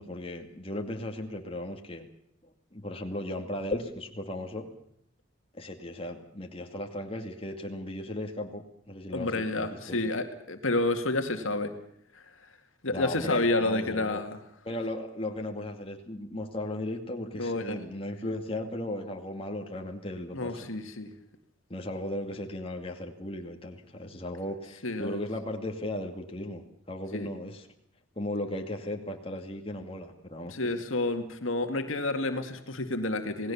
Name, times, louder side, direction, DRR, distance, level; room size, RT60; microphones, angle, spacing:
voice 1, 0.0-2.1 2.4-4.7 5.5-10.1 12.9-14.2 14.7-20.7 21.7-27.7 28.2-30.8, left 1 dB, 25° left, 3 dB, 2.3 m, -36 dB
voice 2, 9.1-11.7 12.1-12.5 12.8-14.4 17.3-17.9 20.3-21.1 24.8-25.2 27.1-27.3 30.5-33.5, left 2 dB, 80° left, 7 dB, 2.1 m, -30 dB
28.0 x 18.5 x 7.2 m, 0.70 s
head